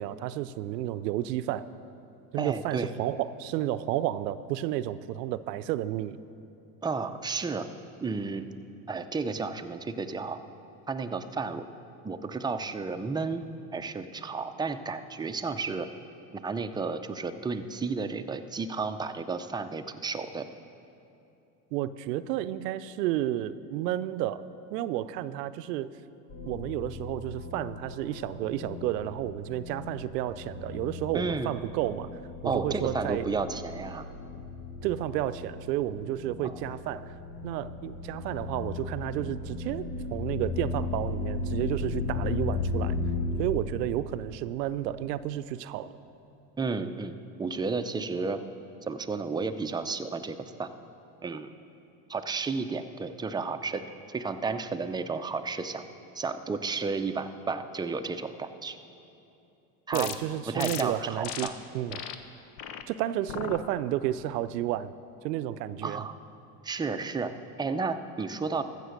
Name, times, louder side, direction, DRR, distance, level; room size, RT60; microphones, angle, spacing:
voice 1, 0.0-1.7 2.3-6.2 21.7-24.4 24.7-25.9 26.5-32.1 32.4-33.3 34.8-37.1 37.4-43.0 43.4-45.9 59.9-61.5 61.7-62.0 62.9-64.9 65.2-66.0, right 13 dB, 90° right, 14 dB, 0.6 m, -31 dB
voice 2, 2.4-2.9 6.8-7.7 8.0-8.4 8.9-10.4 10.9-11.6 12.0-13.4 13.7-15.9 16.3-20.4 31.1-31.6 32.4-34.1 36.4-36.7 46.6-47.1 47.4-48.4 48.8-50.7 51.2-51.5 52.1-53.8 54.1-55.8 56.1-58.8 59.9-60.1 60.5-61.6 61.9-62.0 65.8-66.1 66.6-68.6, right 4 dB, 10° right, 7 dB, 0.5 m, -32 dB
sound 1, 26.3-43.5, left 3 dB, 70° left, 1.9 m, -36 dB
sound 2, 59.9-60.2 60.6-60.8 61.2-61.5 61.9-62.2 62.6-62.8 63.3-63.6 64.1-64.5, left 10 dB, 90° left, 0.8 m, -37 dB
14.5 x 6.7 x 6.5 m, 2.8 s
supercardioid pair, 85°, 47 cm